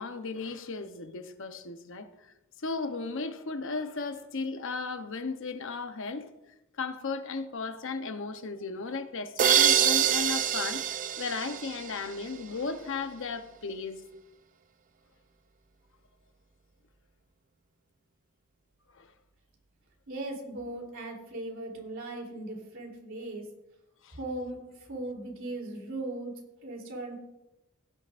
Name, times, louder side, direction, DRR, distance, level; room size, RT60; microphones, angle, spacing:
voice 1, 0.0-2.3 2.6-6.3 6.8-14.0 18.9-19.1 24.0-24.2, left 4 dB, 65° left, 0.9 m, -35 dB
sound 1, 9.4-12.2, right 9 dB, 40° right, 0.6 m, -25 dB
voice 2, 20.1-23.5 24.1-27.2, right 2 dB, 65° right, 3.3 m, -38 dB
16.0 x 9.8 x 2.5 m
head